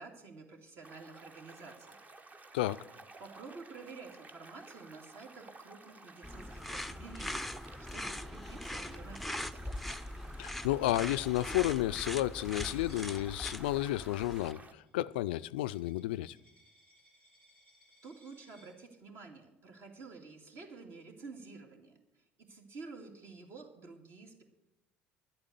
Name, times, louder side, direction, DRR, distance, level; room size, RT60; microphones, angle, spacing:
voice 1, 0.0-2.0 3.2-7.5 7.8-9.7 18.0-24.4, right 4 dB, 55° right, 2.4 m, -50 dB
sound 1, 0.8-14.7, right 3 dB, 30° right, 1.0 m, -54 dB
voice 2, 2.5-2.8 10.4-16.4, left 15 dB, 80° left, 0.3 m, -32 dB
sound 2, 6.2-14.5, left 1 dB, ahead, 0.6 m, -41 dB
Coin (dropping), 12.5-18.7, left 1 dB, 90° right, 5.5 m, -61 dB
11.0 x 8.7 x 8.2 m
hypercardioid pair, 65°, 5 cm